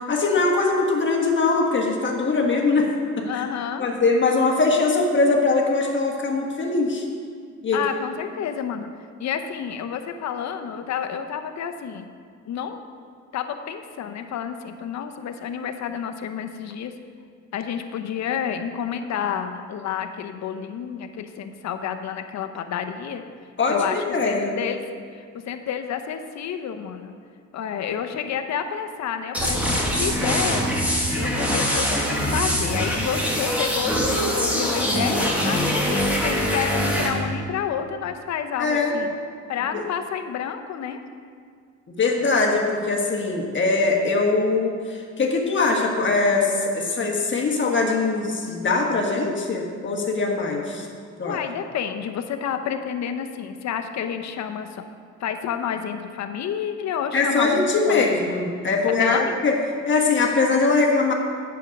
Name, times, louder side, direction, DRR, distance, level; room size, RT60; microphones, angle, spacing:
voice 1, 0.1-2.9 3.3-3.4 3.8-7.0 7.6-7.8 23.6-24.5 38.6-39.0 42.0-50.9 51.2-51.4 57.1-59.5 59.9-61.1, left 3 dB, 40° left, -1 dB, 1.4 m, -21 dB
voice 2, 3.3-3.9 7.7-8.9 9.2-12.1 12.5-12.8 13.3-16.9 17.5-23.2 23.7-24.8 25.1-27.2 27.5-30.7 31.1-39.1 39.5-41.0 51.2-54.8 55.2-58.3 58.9-59.4, left 8 dB, 65° left, 7 dB, 0.8 m, -29 dB
sound 1, 29.3-37.1, equal, 5° right, 1.7 m, -23 dB
8.3 x 6.9 x 5.3 m, 2.1 s
cardioid pair, 90°, 30 cm